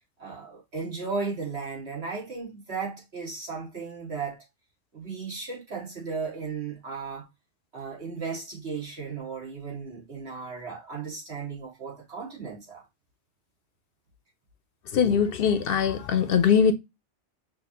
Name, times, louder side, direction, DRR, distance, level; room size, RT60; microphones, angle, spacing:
voice 1, 0.2-4.4 4.9-7.3 7.7-12.8, right 5 dB, 70° right, 2.1 m, -35 dB
voice 2, 14.9-16.7, left 7 dB, 65° left, 0.7 m, -21 dB
5.7 x 2.7 x 2.7 m
omnidirectional pair, 1.1 m